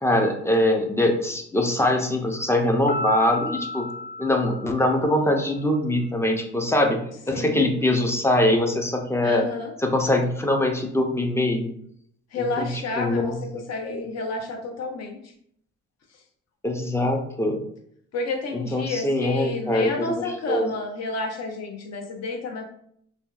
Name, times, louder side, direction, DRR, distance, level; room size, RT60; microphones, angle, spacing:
voice 1, 0.0-3.9 4.2-7.0 7.3-9.5 9.8-11.7 12.4-12.7 13.0-13.4 13.8-14.0 16.6-17.6 18.5-20.1 20.5-20.7, left 1 dB, 10° left, 3 dB, 0.3 m, -23 dB
Piano, 2.9-5.4, left 2 dB, 30° left, 1.2 m, -33 dB
voice 2, 7.3-7.7 9.2-9.7 12.3-13.3 13.7-15.2 18.1-22.7, left 3 dB, 60° left, 2 dB, 0.6 m, -30 dB
2.7 x 2.2 x 2.2 m, 0.68 s
cardioid pair, 90°, 30 cm